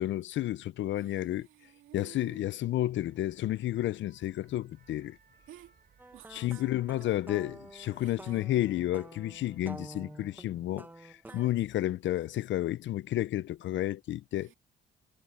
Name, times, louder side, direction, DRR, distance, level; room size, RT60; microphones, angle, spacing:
voice 1, 0.0-1.5 1.9-5.2 6.3-14.5, left 14 dB, 70° left, 0.5 m, -31 dB
voice 2, 0.9-2.4 5.5-5.8 6.1-7.1 7.9-8.5 11.2-11.5 14.3-14.5, right 13 dB, 90° right, 2.3 m, -55 dB
sound 1, 3.0-10.6, right 6 dB, 50° right, 3.2 m, -64 dB
sound 2, 6.0-11.5, right 2 dB, 10° right, 1.1 m, -49 dB
cardioid pair, 90°, 20 cm